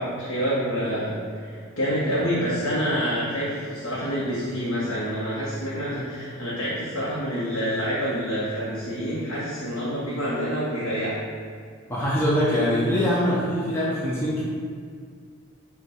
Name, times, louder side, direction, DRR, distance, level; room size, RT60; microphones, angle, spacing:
voice 1, 0.0-11.2, equal, 65° left, -9 dB, 0.8 m, -27 dB
voice 2, 11.9-14.4, equal, 10° left, -8 dB, 0.5 m, -23 dB
5.2 x 2.3 x 4.3 m, 2.1 s
head